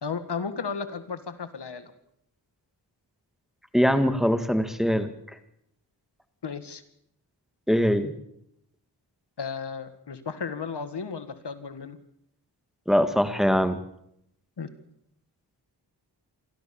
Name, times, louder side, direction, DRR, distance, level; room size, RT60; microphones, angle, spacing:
voice 1, 0.0-1.9 6.4-6.8 9.4-12.0 14.6-14.7, left 5 dB, 70° left, 11 dB, 1.8 m, -34 dB
voice 2, 3.7-5.1 7.7-8.1 12.9-13.8, equal, ahead, 9 dB, 2.0 m, -22 dB
26.5 x 13.5 x 7.2 m, 0.75 s
wide cardioid pair, 65°, 42 cm